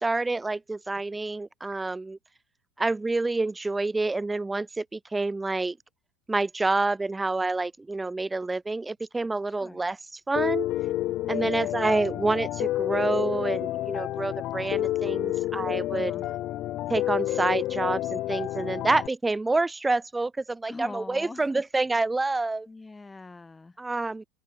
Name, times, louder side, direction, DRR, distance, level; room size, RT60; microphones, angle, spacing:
voice 1, 0.0-2.2 2.8-5.8 6.3-10.0 10.3-10.7 11.3-16.1 16.9-22.7 23.8-24.2, right 3 dB, 10° right, 1.3 m, -28 dB
voice 2, 9.5-9.8 11.4-11.8 15.9-16.3 20.7-21.6 22.7-23.8, left 3 dB, 15° left, 4.8 m, -43 dB
Piano, 10.4-19.1, left 15 dB, 45° left, 3.6 m, -29 dB
open air
figure-of-eight pair, 75°, 0 cm